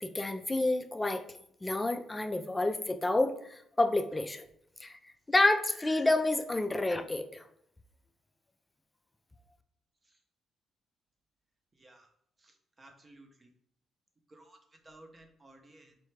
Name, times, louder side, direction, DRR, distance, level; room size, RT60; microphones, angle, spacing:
voice 1, 0.0-1.2 1.6-4.4 4.8-5.0 5.3-7.4, left 2 dB, 15° left, 7 dB, 0.4 m, -29 dB
voice 2, 11.8-12.1 12.4-13.5 14.3-14.6 14.8-16.0, right 1 dB, 30° right, 4 dB, 0.7 m, -56 dB
4.3 x 2.3 x 3.2 m, 0.69 s
cardioid pair, 90°, 0 cm